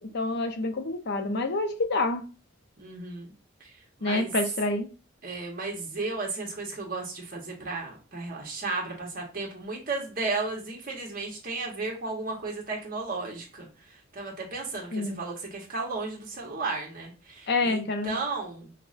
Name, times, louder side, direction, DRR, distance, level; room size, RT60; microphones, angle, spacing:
voice 1, 0.0-2.2 4.0-4.9 14.9-15.2 17.5-18.2, left 2 dB, 55° left, 0.6 m, -27 dB
voice 2, 2.8-3.3 3.6-3.7 4.0-4.3 5.2-13.7 14.1-18.7, right 3 dB, 45° right, 1.2 m, -34 dB
5.6 x 2.1 x 2.5 m
head